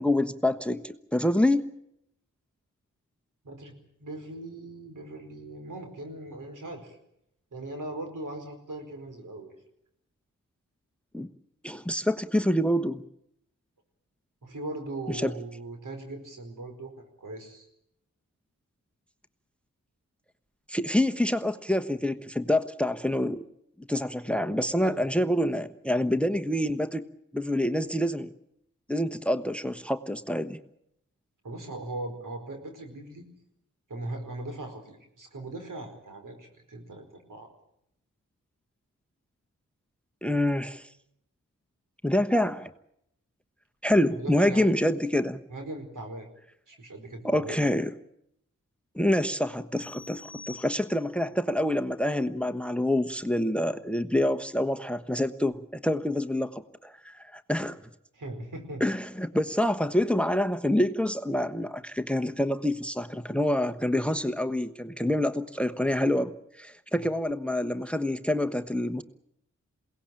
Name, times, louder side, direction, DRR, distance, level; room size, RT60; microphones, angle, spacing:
voice 1, 0.0-1.7 11.1-11.3 11.6-13.0 15.1-15.3 20.7-23.4 23.8-27.0 27.3-28.3 28.9-30.6 40.2-40.8 42.0-42.7 43.8-45.4 47.2-47.9 48.9-57.8 58.8-69.0, left 1 dB, 5° left, 11 dB, 1.2 m, -27 dB
voice 2, 3.4-7.0 7.5-9.5 14.4-17.7 24.8-25.1 31.4-33.3 33.9-37.5 44.1-44.7 45.5-46.3 46.7-47.6 58.1-58.8 66.9-67.1, right 2 dB, 75° right, 5 dB, 4.8 m, -39 dB
sound 1, 49.8-51.3, left 3 dB, 30° left, 2.8 m, -47 dB
22.0 x 18.0 x 9.0 m, 0.76 s
cardioid pair, 40°, 31 cm